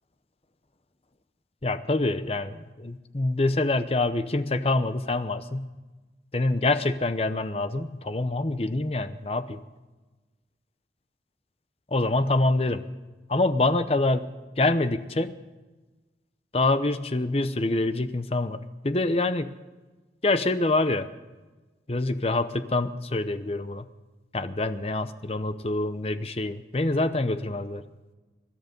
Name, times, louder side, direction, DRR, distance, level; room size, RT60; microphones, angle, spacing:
voice 1, 1.6-5.7 6.3-9.6 11.9-12.8 13.3-14.3 14.6-15.3 16.5-19.5 20.2-21.1 21.9-23.8 24.3-27.8, left 2 dB, 35° left, 11 dB, 0.8 m, -26 dB
24.5 x 11.0 x 5.3 m, 1.2 s
head